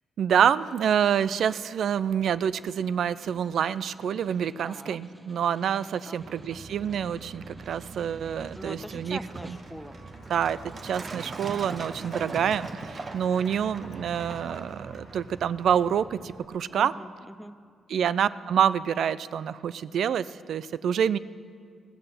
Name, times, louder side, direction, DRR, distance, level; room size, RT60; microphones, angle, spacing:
voice 1, 0.2-9.2 9.5-9.6 10.3-10.6 10.8-16.9 17.9-21.2, right 8 dB, 75° right, 16 dB, 0.3 m, -27 dB
Snare drum, 2.1-10.0, right 1 dB, 20° right, 1.0 m, -50 dB
voice 2, 4.6-5.0 6.1-6.8 8.6-10.0 16.7-17.6, equal, ahead, 13 dB, 0.6 m, -43 dB
Truck, 6.2-16.5, right 3 dB, 45° right, 0.8 m, -41 dB
sound 1, 9.0-15.7, left 4 dB, 90° left, 1.1 m, -54 dB
16.0 x 6.6 x 7.6 m, 2.2 s
cardioid pair, 65°, 0 cm